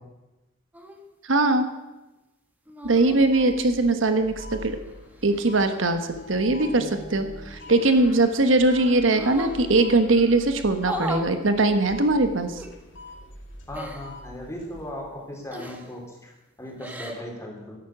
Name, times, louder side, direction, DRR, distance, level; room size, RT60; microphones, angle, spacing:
sound 1, 0.7-1.0 2.7-3.3 4.6-5.7 7.8-8.5 9.0-9.6 10.8-11.3 12.6-12.7 13.7-14.1 15.5-16.0 16.7-17.2, right 1 dB, 10° right, 1.4 m, -37 dB
voice 1, 1.2-1.7 2.8-4.8 5.2-12.6, right 2 dB, 75° right, 8 dB, 1.2 m, -21 dB
sound 2, 2.8-14.9, left 1 dB, 65° left, 2.6 m, -43 dB
voice 2, 13.7-16.3 16.6-17.8, left 1 dB, 15° left, -1 dB, 3.8 m, -37 dB
13.5 x 11.5 x 6.1 m, 1.0 s
head